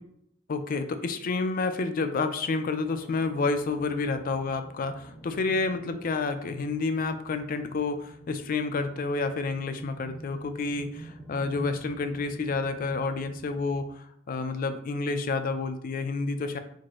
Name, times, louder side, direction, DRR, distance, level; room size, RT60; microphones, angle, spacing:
voice 1, 0.5-16.6, left 3 dB, 45° left, 10 dB, 0.4 m, -29 dB
sound 1, 2.8-13.9, right 1 dB, 5° left, 1.0 m, -47 dB
4.3 x 3.0 x 3.1 m, 0.71 s
head